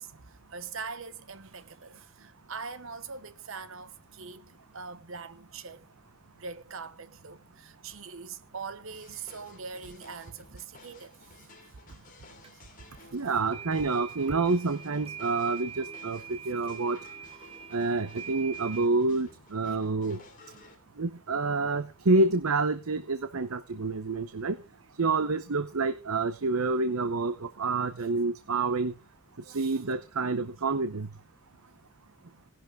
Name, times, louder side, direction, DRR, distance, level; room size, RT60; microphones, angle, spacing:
voice 1, 0.0-5.8 6.4-11.3 11.6-11.8 29.5-29.8, right 5 dB, 70° right, 1.1 m, -42 dB
sound 1, 8.9-20.7, left 3 dB, 40° left, 3.9 m, -55 dB
sound 2, 12.4-12.5 13.5-18.9, right 8 dB, 25° right, 1.7 m, -44 dB
voice 2, 13.1-17.0 17.7-20.2 21.0-24.6 25.0-28.9 29.5-31.1, right 3 dB, 85° right, 0.8 m, -28 dB
17.5 x 11.0 x 3.7 m
head